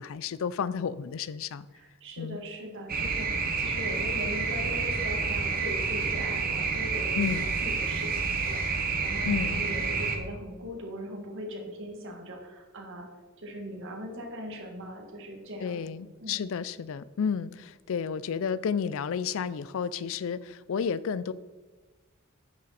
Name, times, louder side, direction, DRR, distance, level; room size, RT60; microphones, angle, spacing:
voice 1, 0.0-1.7 2.2-2.4 7.2-7.5 9.2-9.6 15.6-21.3, left 6 dB, 65° left, 18 dB, 0.4 m, -31 dB
voice 2, 1.7-3.3 3.6-13.1 13.4-15.8 16.2-16.4, equal, 60° right, 1 dB, 2.0 m, -40 dB
sound 1, 2.9-10.2, right 4 dB, 45° right, 1.1 m, -29 dB
10.0 x 6.5 x 4.2 m, 1.3 s
head